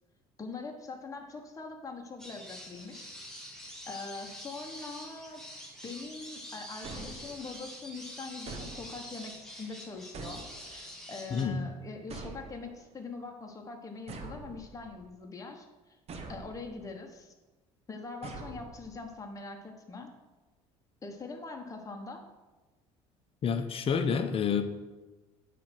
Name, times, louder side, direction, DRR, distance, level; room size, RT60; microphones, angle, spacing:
voice 1, 0.4-3.1 3.9-5.4 5.8-16.0 16.3-17.3 17.9-20.1 21.0-22.2, left 3 dB, 25° left, 2 dB, 1.2 m, -43 dB
sound 1, 2.2-11.4, equal, 5° left, 1.8 m, -46 dB
sound 2, 6.8-7.7 8.5-9.3 10.1-11.0 12.1-12.9 14.1-15.1 16.1-16.9 18.2-19.1, right 3 dB, 50° right, 1.1 m, -45 dB
voice 2, 11.3-11.7 23.4-24.6, left 6 dB, 40° left, 8 dB, 0.8 m, -28 dB
8.4 x 3.4 x 6.1 m, 1.2 s
supercardioid pair, 75°, 14 cm